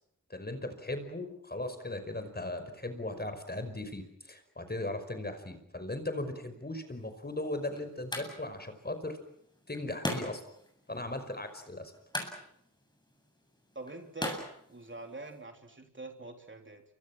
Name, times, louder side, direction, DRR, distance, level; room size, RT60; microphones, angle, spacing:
voice 1, 0.3-9.2 9.7-10.4 10.9-11.9, left 2 dB, 30° left, 9 dB, 5.3 m, -38 dB
sound 1, 6.9-15.4, left 1 dB, 15° left, 7.7 m, -42 dB
voice 2, 13.8-14.4 14.7-16.8, right 2 dB, 35° right, 4 dB, 3.5 m, -44 dB
28.5 x 25.0 x 6.0 m, 0.73 s
wide cardioid pair, 65°, 32 cm